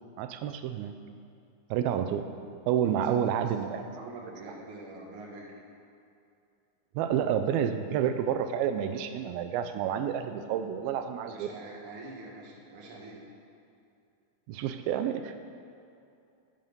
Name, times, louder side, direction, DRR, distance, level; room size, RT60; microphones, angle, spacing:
voice 1, 0.2-1.0 1.7-2.3 2.7-3.8 7.0-11.5 14.5-15.4, right 9 dB, 85° right, 9 dB, 2.4 m, -29 dB
voice 2, 3.4-5.6 11.3-13.3, right 2 dB, 50° right, -2 dB, 1.9 m, -45 dB
10.5 x 7.7 x 5.4 m, 2.6 s
omnidirectional pair, 4.2 m